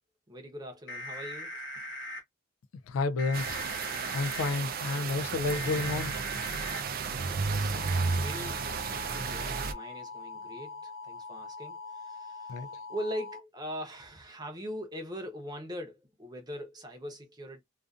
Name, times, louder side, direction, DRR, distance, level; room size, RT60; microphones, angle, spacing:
voice 1, 0.3-1.6 7.1-17.6, equal, 20° right, 0.7 m, -42 dB
sound 1, 0.9-2.2 3.2-4.5 5.5-6.8 7.8-13.4, left 2 dB, 60° left, 0.9 m, -41 dB
voice 2, 2.9-3.6 4.1-6.1 12.5-12.7, left 3 dB, 85° left, 0.3 m, -30 dB
sound 2, 3.3-9.7, right 4 dB, 45° right, 0.4 m, -33 dB
2.5 x 2.4 x 2.3 m
head